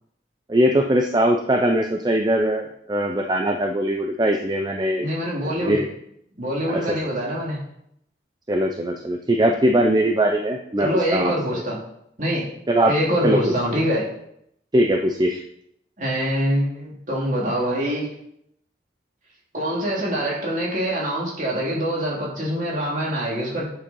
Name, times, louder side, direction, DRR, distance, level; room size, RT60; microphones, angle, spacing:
voice 1, 0.5-5.1 5.4-5.8 6.7-7.0 8.5-11.6 12.7-12.9 13.2-13.4 14.7-15.4, right 1 dB, 20° right, 3 dB, 0.6 m, -21 dB
voice 2, 5.0-5.8 6.4-7.6 10.8-11.7 12.2-12.5 12.9-14.0 16.0-18.1 19.5-23.7, equal, 45° right, -4 dB, 2.9 m, -24 dB
7.7 x 7.0 x 5.5 m, 0.74 s
head